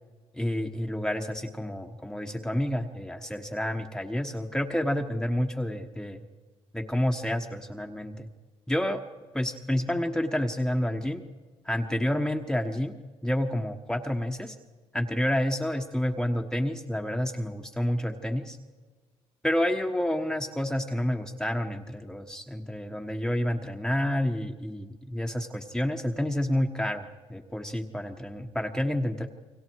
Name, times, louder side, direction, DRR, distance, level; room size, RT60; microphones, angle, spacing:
voice 1, 0.3-6.2 6.7-8.3 8.7-9.0 9.3-11.2 11.6-12.9 13.2-14.6 14.9-18.6 19.4-29.3, left 1 dB, 5° left, 3 dB, 1.3 m, -29 dB
28.5 x 24.0 x 4.7 m, 1.4 s
cardioid pair, 95°, 11 cm